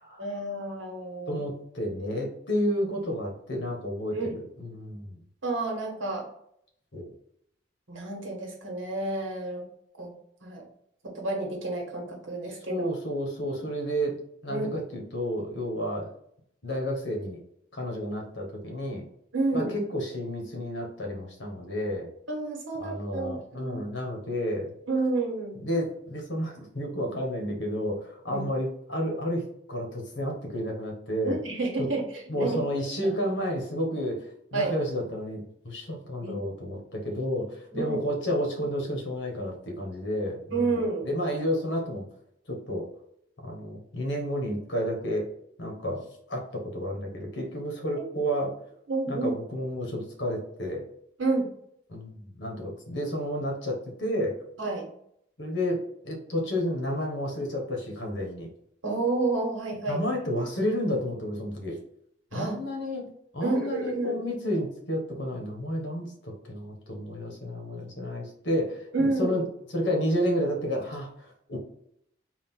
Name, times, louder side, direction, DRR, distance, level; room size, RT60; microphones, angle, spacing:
voice 1, 0.2-1.4 4.1-4.3 5.4-6.3 7.9-9.6 10.0-10.1 10.4-10.6 11.0-12.9 14.5-14.7 19.3-19.7 22.3-23.8 24.9-25.6 28.3-28.5 31.2-32.6 34.5-34.8 36.2-36.4 37.7-38.0 40.5-41.1 48.0-48.1 48.9-49.3 51.2-51.5 54.6-54.9 58.8-60.0 62.3-62.6 63.4-64.2 68.9-69.4, right 3 dB, 90° right, 0 dB, 1.3 m, -30 dB
voice 2, 1.3-4.2 4.6-5.2 6.9-7.1 12.7-14.2 14.4-16.1 16.6-17.4 17.7-19.0 19.5-22.1 22.8-24.7 25.6-31.4 31.8-31.9 32.3-40.7 41.0-42.0 42.5-42.9 43.4-45.3 45.6-48.6 49.1-50.8 51.9-54.4 55.4-58.5 59.9-61.8 62.3-63.1 63.3-69.4 69.7-71.6, equal, 70° left, 0 dB, 1.3 m, -31 dB
3.8 x 2.5 x 3.7 m, 0.71 s
head